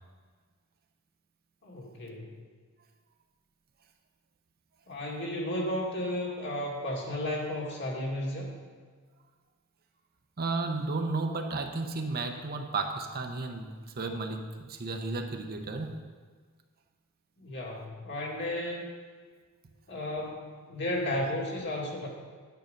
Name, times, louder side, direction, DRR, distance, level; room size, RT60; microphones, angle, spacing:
voice 1, 1.6-2.3 4.9-8.5 17.4-18.9 19.9-22.1, left 1 dB, 55° left, -2 dB, 2.2 m, -33 dB
voice 2, 10.4-15.9, right 3 dB, 45° right, 4 dB, 0.8 m, -33 dB
9.3 x 8.7 x 5.2 m, 1.5 s
head